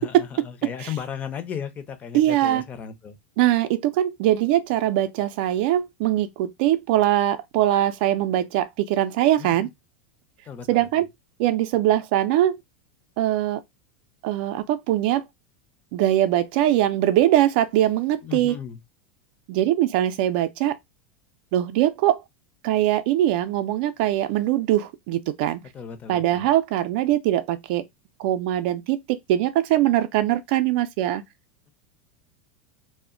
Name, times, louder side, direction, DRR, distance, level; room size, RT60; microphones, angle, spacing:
voice 1, 0.0-3.2 9.4-9.7 10.4-11.0 18.2-18.8 25.6-26.5, left 8 dB, 30° left, 0.6 m, -36 dB
voice 2, 2.1-2.6 3.4-9.7 10.7-11.1 11.4-12.6 13.2-13.6 14.2-15.2 15.9-18.5 19.5-20.8 21.5-22.2 22.6-25.6 26.1-27.9 28.2-31.2, right 13 dB, 60° right, 0.4 m, -22 dB
2.1 x 2.1 x 3.6 m
supercardioid pair, 120°, 6 cm